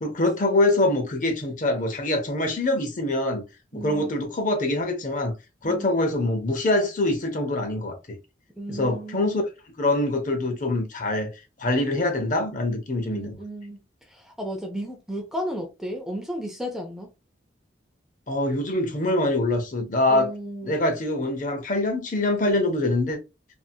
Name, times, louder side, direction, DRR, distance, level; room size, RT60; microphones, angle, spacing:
voice 1, 0.0-3.4 3.7-5.3 5.6-8.0 8.7-9.4 9.8-11.3 11.6-13.4 18.3-20.3 20.6-23.2, left 2 dB, 40° left, 0.7 m, -24 dB
voice 2, 3.7-4.1 5.6-5.9 8.6-9.4 13.0-17.1 20.1-20.8, equal, ahead, 0.5 m, -34 dB
2.7 x 2.5 x 2.6 m
head